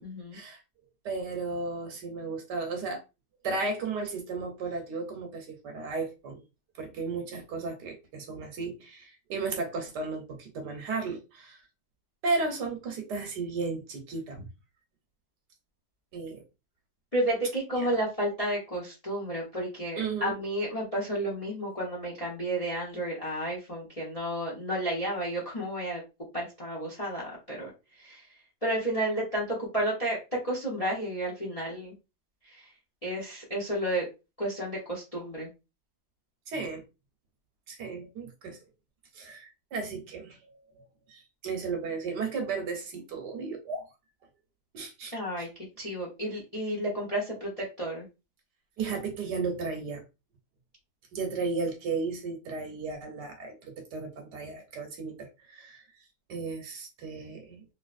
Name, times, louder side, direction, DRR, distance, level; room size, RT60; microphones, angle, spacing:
voice 1, 0.0-0.4 17.1-26.0 26.3-27.7 28.0-28.2 28.6-31.9 32.5-32.6 33.0-34.0 34.4-35.5 45.1-45.5 45.8-48.1, right 1 dB, 35° left, 0.6 m, -31 dB
voice 2, 1.0-3.0 3.4-6.4 6.8-11.6 12.2-14.4 16.1-16.4 17.7-18.0 20.0-20.3 36.5-36.8 37.7-38.6 39.1-43.9 44.7-45.5 48.8-50.0 51.1-55.8 56.3-57.6, right 4 dB, 70° right, 1.3 m, -34 dB
3.2 x 2.9 x 2.4 m
omnidirectional pair, 2.1 m